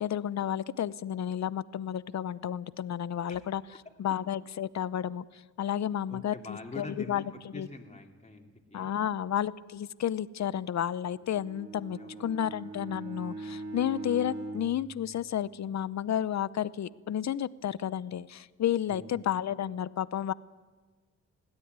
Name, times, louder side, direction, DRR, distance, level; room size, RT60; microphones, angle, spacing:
voice 1, 0.0-3.6 4.0-5.2 5.6-7.2 7.5-7.7 8.7-20.3, left 10 dB, 65° left, 19 dB, 0.8 m, -31 dB
voice 2, 3.3-3.8 6.1-8.9 11.8-12.6 18.9-19.2, left 2 dB, 20° left, 2 dB, 2.7 m, -45 dB
Bowed string instrument, 11.1-15.8, right 2 dB, 75° right, 4.5 m, -42 dB
21.5 x 17.0 x 9.6 m, 1.4 s
cardioid pair, 95°, 30 cm